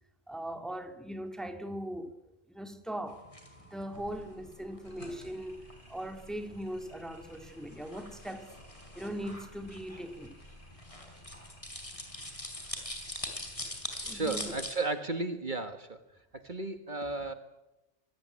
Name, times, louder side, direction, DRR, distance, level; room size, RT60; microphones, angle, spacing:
voice 1, 0.3-2.1 2.5-3.2 3.6-8.5 9.0-10.4 14.0-14.6, right 1 dB, ahead, 2.0 m, -40 dB
sound 1, 3.1-14.7, left 1 dB, 30° left, 4.3 m, -44 dB
sound 2, 3.9-14.7, left 1 dB, 45° left, 6.2 m, -56 dB
voice 2, 14.1-16.0 16.3-17.3, right 3 dB, 45° right, 1.8 m, -34 dB
25.5 x 19.5 x 9.9 m
omnidirectional pair, 1.2 m